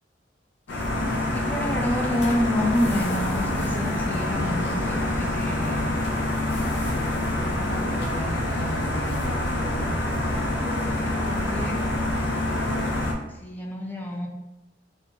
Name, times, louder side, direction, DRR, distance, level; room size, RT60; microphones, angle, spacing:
sound 1, 0.7-13.1, left 1 dB, 65° left, 0.5 m, -26 dB
voice 1, 1.3-5.9 7.2-10.0 11.1-11.8 13.3-14.3, left 1 dB, 10° left, 1 dB, 0.4 m, -30 dB
2.7 x 2.2 x 2.8 m, 0.98 s
head